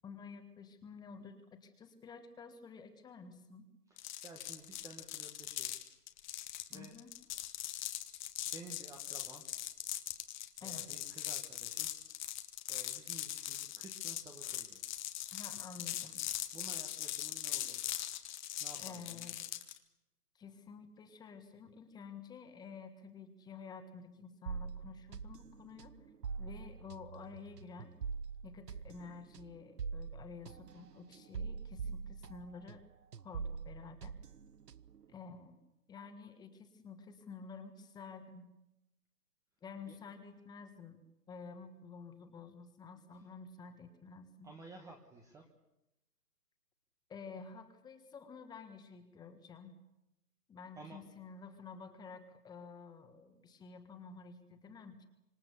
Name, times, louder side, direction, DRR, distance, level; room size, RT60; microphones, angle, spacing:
voice 1, 0.0-3.7 6.7-7.1 10.6-10.9 15.3-16.2 18.8-19.4 20.3-26.0 26.4-28.0 28.4-32.8 33.2-34.1 35.1-35.6 35.9-38.5 39.6-41.0 41.3-44.5 47.1-49.8 50.5-55.1, left 5 dB, 10° left, 8 dB, 1.5 m, -51 dB
voice 2, 3.9-5.9 6.7-6.9 8.4-9.4 10.6-11.9 12.7-14.8 16.5-18.0 18.6-19.4 39.9-40.0 43.2-43.3 44.4-45.5 50.7-51.0, right 3 dB, 5° right, 2 dB, 1.2 m, -54 dB
sound 1, 4.0-19.8, left 13 dB, 30° left, 1.3 m, -41 dB
sound 2, 24.5-32.8 33.1-35.0, right 5 dB, 85° right, 0.9 m, -44 dB
26.0 x 24.0 x 6.9 m, 0.92 s
figure-of-eight pair, 140°, 47 cm